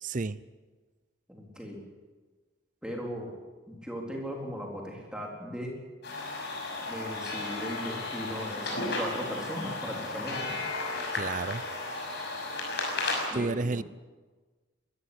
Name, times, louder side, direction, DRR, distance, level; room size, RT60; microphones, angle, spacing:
voice 1, 0.0-0.4 11.1-11.6 13.3-13.8, right 3 dB, 40° right, 17 dB, 0.6 m, -31 dB
voice 2, 1.3-1.8 2.8-3.3 3.7-5.8 6.8-10.7 13.3-13.8, equal, 5° right, -1 dB, 4.0 m, -38 dB
sound 1, 6.0-13.3, left 2 dB, 55° left, 6.0 m, -34 dB
22.5 x 14.0 x 9.9 m, 1.3 s
head